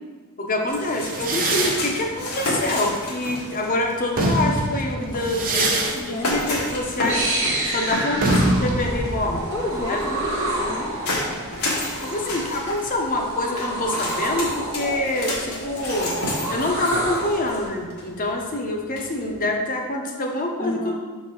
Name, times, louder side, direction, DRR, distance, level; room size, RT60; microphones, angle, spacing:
voice 1, 0.4-7.2 7.7-9.4 9.9-10.0 12.0-16.1 16.5-20.9, left 2 dB, 40° left, 1 dB, 0.8 m, -26 dB
Jumping over metal fence, 0.7-19.4, left 1 dB, 90° left, 1.5 m, -32 dB
sound 1, 1.0-3.5 3.9-11.5, right 1 dB, 40° right, 0.8 m, -26 dB
voice 2, 5.6-6.4 9.5-11.0 20.6-20.9, left 2 dB, 20° left, -3 dB, 0.4 m, -31 dB
sound 2, 6.6-17.7, right 1 dB, 55° right, 1.2 m, -29 dB
6.7 x 4.1 x 3.8 m, 1.5 s
head